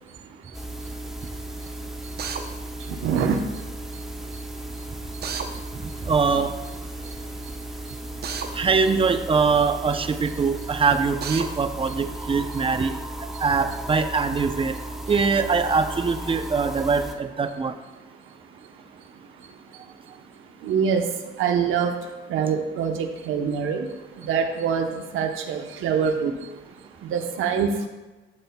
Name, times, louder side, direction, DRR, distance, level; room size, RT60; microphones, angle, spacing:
sound 1, 0.5-17.1, right 1 dB, ahead, 0.9 m, -35 dB
voice 1, 1.6-2.1 2.4-2.5 2.8-3.6 3.9-4.4 5.1-5.2 5.5-5.9 7.0-8.4 19.4-19.5 19.7-19.8 20.6-23.9 24.1-26.5 27.0-27.9, right 6 dB, 85° right, 5 dB, 0.9 m, -27 dB
Drill, 2.2-2.4 5.2-5.5 8.2-8.5 11.2-11.5, right 6 dB, 55° right, 0.8 m, -31 dB
voice 2, 6.0-6.5 8.5-13.0 13.4-14.8 15.1-17.7, right 5 dB, 25° right, 9 dB, 0.6 m, -22 dB
11.5 x 6.9 x 2.3 m, 1.2 s
cardioid pair, 90°, 20 cm